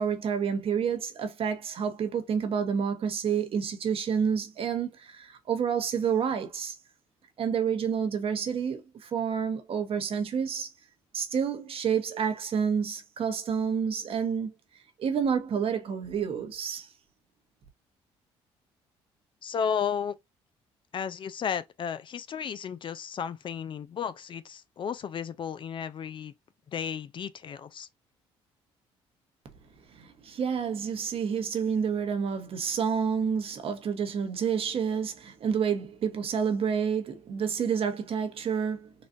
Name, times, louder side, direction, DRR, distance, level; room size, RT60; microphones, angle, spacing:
voice 1, 0.0-6.8 7.4-10.7 11.1-14.5 15.0-16.9 29.9-38.9, right 7 dB, 55° right, 1.1 m, -29 dB
voice 2, 19.4-20.1 20.9-26.3 26.7-27.9, left 7 dB, 45° left, 0.4 m, -33 dB
4.0 x 2.3 x 2.5 m
supercardioid pair, 70°, 12 cm